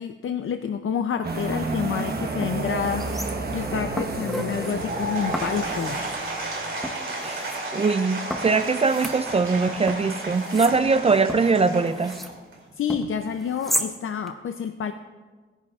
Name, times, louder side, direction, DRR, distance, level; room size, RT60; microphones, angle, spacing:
voice 1, 0.0-6.0 12.7-14.9, left 7 dB, 80° left, 7 dB, 0.5 m, -29 dB
sound 1, 1.2-6.8, right 3 dB, 50° right, 1.1 m, -31 dB
sound 2, 2.0-2.1 2.4-3.6 4.0-4.8 5.3-6.2 6.8-7.6 8.3-9.6 9.9-12.4 12.9-13.9 14.3-14.4, equal, ahead, 0.7 m, -34 dB
Applause / Crowd, 4.5-12.7, right 2 dB, 70° right, 2.8 m, -33 dB
voice 2, 7.2-12.2, right 4 dB, 30° right, 11 dB, 0.3 m, -22 dB
17.5 x 10.5 x 2.4 m, 1.4 s
wide cardioid pair, 160°, 21 cm